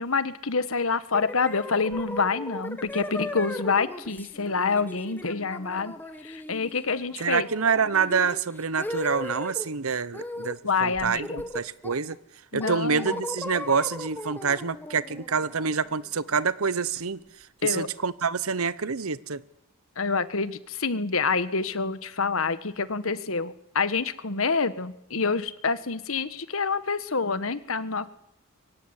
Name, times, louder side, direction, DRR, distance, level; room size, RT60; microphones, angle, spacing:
voice 1, 0.0-5.9 6.2-7.5 10.6-11.4 12.5-13.2 17.6-17.9 20.0-28.1, left 4 dB, 70° left, 14 dB, 1.5 m, -27 dB
sound 1, 1.1-9.7 10.1-10.6 10.9-12.1 12.6-16.3, left 1 dB, 10° left, 1.9 m, -37 dB
voice 2, 7.2-11.3 11.5-12.2 12.5-17.2 17.6-19.4, right 5 dB, 75° right, 18 dB, 1.0 m, -27 dB
23.5 x 17.0 x 9.8 m, 0.78 s
head